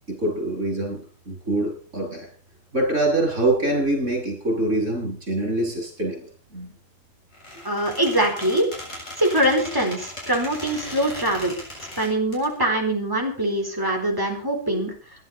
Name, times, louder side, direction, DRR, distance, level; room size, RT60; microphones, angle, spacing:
voice 1, 0.1-2.3 2.7-6.7 14.7-14.8, right 1 dB, 70° right, 1 dB, 8.2 m, -25 dB
Squeak, 7.3-12.5, left 1 dB, 80° left, 7.7 m, -37 dB
voice 2, 7.6-8.7 9.2-11.5 12.0-14.9, right 1 dB, 15° right, 2 dB, 4.2 m, -23 dB
22.0 x 11.5 x 4.1 m, 0.39 s
omnidirectional pair, 1.3 m